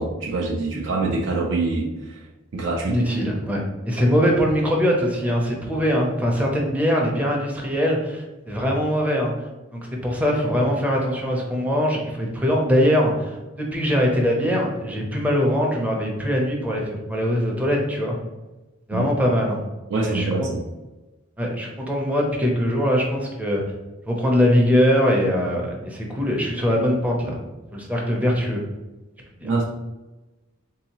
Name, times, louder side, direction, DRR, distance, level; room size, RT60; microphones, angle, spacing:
voice 1, 0.0-2.2 2.5-3.0 18.9-19.1 19.9-20.6 29.4-29.6, right 3 dB, 65° right, -1 dB, 0.4 m, -25 dB
voice 2, 2.9-9.3 9.7-18.2 18.9-19.6 20.0-20.3 21.4-23.6 24.1-27.4 27.7-28.6 29.4-29.5, equal, 5° right, -1 dB, 0.5 m, -22 dB
3.8 x 2.7 x 2.9 m, 1.1 s
head